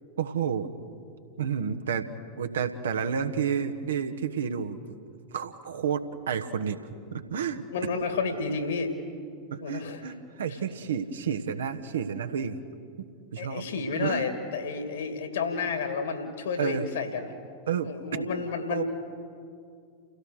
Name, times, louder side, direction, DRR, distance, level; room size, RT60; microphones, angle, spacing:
voice 1, 0.2-0.7 1.4-2.1 2.4-5.0 5.3-6.8 7.1-7.6 7.9-8.0 9.5-12.6 13.0-13.6 14.0-14.2 16.6-16.9 17.7-18.3 18.7-18.8, right 7 dB, 65° right, 7 dB, 1.2 m, -30 dB
voice 2, 7.7-8.9 9.6-10.0 13.4-17.3 17.8-18.8, left 5 dB, 60° left, 7 dB, 2.5 m, -31 dB
29.5 x 16.5 x 6.4 m, 2.3 s
figure-of-eight pair, 90°, 0 cm